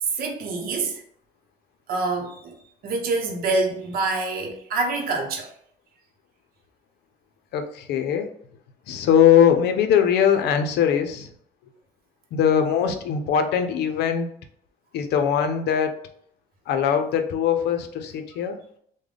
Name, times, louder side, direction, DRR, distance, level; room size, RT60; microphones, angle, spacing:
voice 1, 0.0-1.0 1.9-2.6 2.8-5.5, right 3 dB, 60° right, 0.7 m, -26 dB
voice 2, 7.5-8.3 8.9-11.3 12.3-14.3 14.9-16.0 16.7-18.6, left 8 dB, 75° left, 0.6 m, -21 dB
3.3 x 2.2 x 3.7 m
cardioid pair, 110°, 17 cm